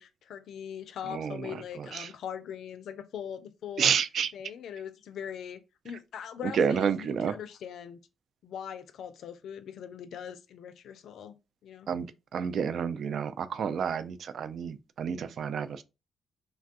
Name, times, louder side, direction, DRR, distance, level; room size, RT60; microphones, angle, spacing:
voice 1, 0.0-3.9 4.3-8.0 8.4-11.4 11.6-11.9, left 8 dB, 75° left, 0.4 m, -41 dB
voice 2, 1.1-2.1 3.8-4.3 6.4-7.4 11.9-15.8, right 7 dB, 65° right, 0.3 m, -30 dB
3.2 x 2.2 x 2.4 m
hypercardioid pair, 45°, 0 cm